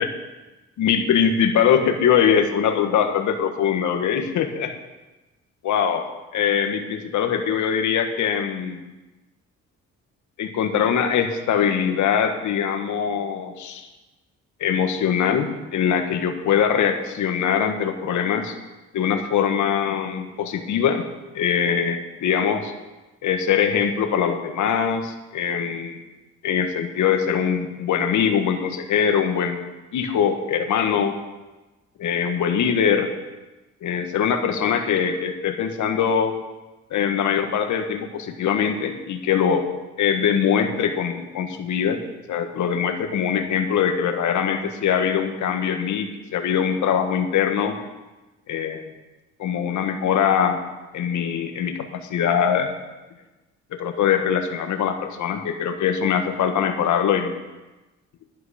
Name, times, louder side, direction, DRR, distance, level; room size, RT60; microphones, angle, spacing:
voice 1, 0.8-4.7 5.6-6.0 6.3-8.8 10.4-13.9 14.6-18.5 18.9-21.0 21.3-22.7 23.2-26.0 26.4-31.1 32.0-33.1 33.8-36.3 36.9-39.6 40.0-42.0 42.3-47.8 48.5-48.8 49.4-50.6 50.9-52.7 53.7-57.3, left 8 dB, 75° left, 6 dB, 1.5 m, -22 dB
11.5 x 11.0 x 5.0 m, 1.1 s
cardioid pair, 90°, 30 cm